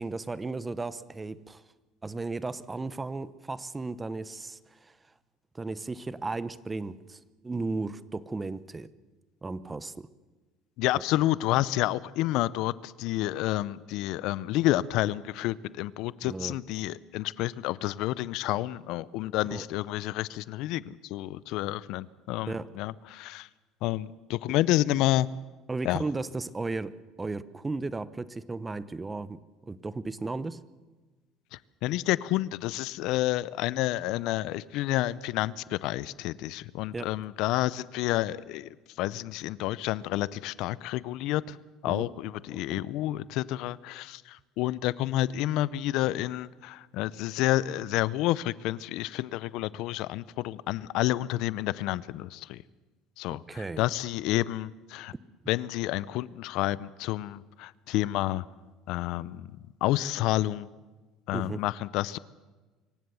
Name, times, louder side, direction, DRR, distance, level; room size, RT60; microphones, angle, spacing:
voice 1, 0.0-1.6 2.0-4.9 5.5-8.9 9.4-10.1 16.2-16.5 19.5-19.6 22.5-22.7 25.7-30.6 36.9-37.1 41.9-42.1 42.5-42.8 53.5-53.8 61.3-61.6, right 3 dB, 15° right, 17 dB, 0.8 m, -35 dB
voice 2, 10.8-23.5 23.8-25.3 25.8-26.0 31.5-41.6 41.8-52.6 53.2-55.1 55.5-58.5 58.9-59.5 59.8-60.7 61.3-62.2, left 15 dB, 70° left, 20 dB, 0.6 m, -29 dB
25.5 x 16.0 x 7.0 m, 1.3 s
supercardioid pair, 105°, 0 cm